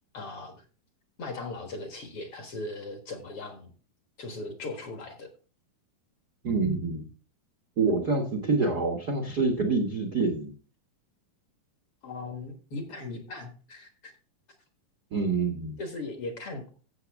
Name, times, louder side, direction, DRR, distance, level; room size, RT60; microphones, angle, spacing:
voice 1, 0.1-0.6 1.2-3.7 4.2-5.3 12.0-14.1 15.8-16.7, left 2 dB, 50° left, 5 dB, 2.1 m, -38 dB
voice 2, 6.4-7.1 7.8-10.5 15.1-15.8, right 3 dB, 50° right, 4 dB, 1.2 m, -26 dB
14.5 x 7.3 x 3.5 m, 0.38 s
omnidirectional pair, 3.9 m